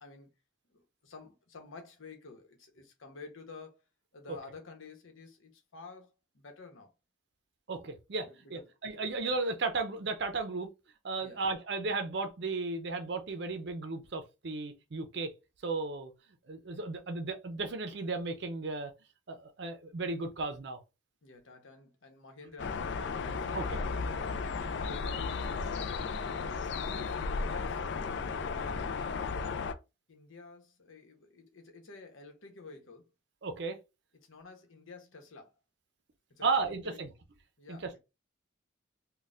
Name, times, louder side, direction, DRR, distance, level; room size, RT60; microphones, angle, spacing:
voice 1, 0.7-3.8 4.1-6.9 8.2-8.7 11.2-11.4 21.2-25.9 26.4-27.9 28.5-29.0 30.1-33.0 34.3-35.5 36.3-37.0 37.6-38.0, left 3 dB, 85° left, 0.9 m, -51 dB
voice 2, 7.7-10.7 11.0-15.3 15.6-16.1 16.5-18.9 19.3-20.8 23.5-23.8 33.4-33.8 36.4-37.1 37.7-38.0, right 3 dB, 55° right, 0.5 m, -34 dB
sound 1, 22.6-29.7, left 4 dB, 60° left, 0.3 m, -34 dB
4.1 x 2.2 x 2.4 m
head